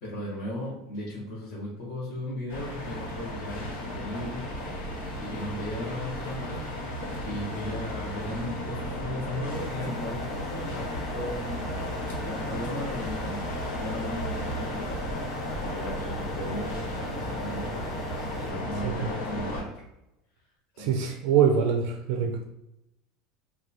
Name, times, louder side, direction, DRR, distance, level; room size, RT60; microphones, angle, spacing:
voice 1, 0.0-4.5 5.2-6.6 7.2-11.7 12.2-13.5 13.7-15.1 15.5-17.9 18.2-19.8 20.7-20.9, left 1 dB, 45° left, -7 dB, 0.9 m, -36 dB
sound 1, 2.5-19.6, equal, 85° left, 1.2 m, -34 dB
sound 2, 9.5-18.5, left 1 dB, 5° left, 0.4 m, -45 dB
voice 2, 20.8-22.3, right 7 dB, 60° right, 4 dB, 0.4 m, -24 dB
3.0 x 2.2 x 3.8 m, 0.88 s
cardioid pair, 175°, 0 cm